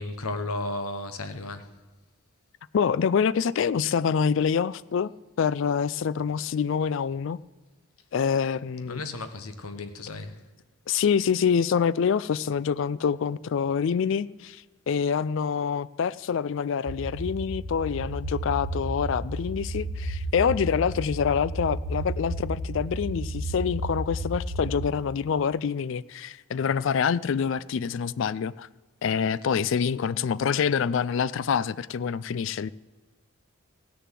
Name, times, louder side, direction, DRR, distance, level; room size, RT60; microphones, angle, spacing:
voice 1, 0.0-1.7 8.9-10.4, left 2 dB, 80° left, 1.1 m, -34 dB
voice 2, 2.7-5.1 5.4-7.4 8.1-9.0 10.9-28.7 29.0-32.7, left 6 dB, 55° left, 0.3 m, -26 dB
sound 1, 16.9-24.9, right 1 dB, 55° right, 0.8 m, -32 dB
15.5 x 6.8 x 7.5 m
head